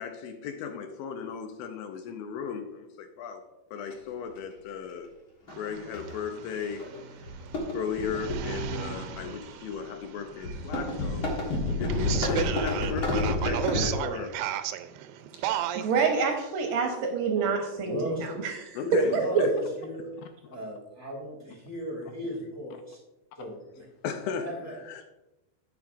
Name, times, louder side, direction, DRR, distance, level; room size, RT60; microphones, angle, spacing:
voice 1, 0.0-3.4 3.7-5.1 5.5-7.3 7.7-14.4 15.7-15.8 17.4-17.5 18.7-19.5 23.4-23.5 24.0-25.0, left 6 dB, 80° left, 2.3 m, -36 dB
sound 1, 3.9-4.0 5.5-5.6 5.9-6.2 6.8-7.0 7.2-9.4 10.4-13.9, left 2 dB, 55° left, 1.5 m, -29 dB
sound 2, 5.5-16.2, right 11 dB, 90° right, 2.6 m, -36 dB
voice 2, 15.5-18.0 18.4-18.5 19.1-19.5, right 5 dB, 70° right, 2.5 m, -26 dB
voice 3, 17.8-18.3 18.8-20.1 20.4-23.0 23.3-23.8 24.4-24.8, equal, 10° left, 1.2 m, -36 dB
10.5 x 8.3 x 2.5 m
omnidirectional pair, 4.5 m